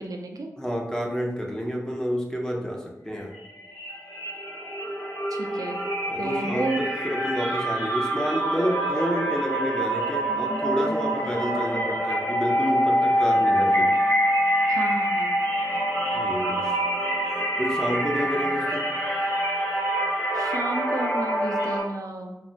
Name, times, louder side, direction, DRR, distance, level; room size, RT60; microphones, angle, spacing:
voice 1, 0.0-0.5 5.3-5.8 6.2-6.8 14.7-15.4 20.3-22.4, right 2 dB, 70° right, 3 dB, 0.3 m, -32 dB
voice 2, 0.6-3.3 6.1-13.9 16.1-16.7 17.6-18.9, equal, 10° left, 0 dB, 0.5 m, -29 dB
sound 1, 3.3-3.4 3.7-21.8, equal, 70° left, 1.5 m, -25 dB
3.2 x 2.1 x 2.6 m, 0.95 s
wide cardioid pair, 65°, 6 cm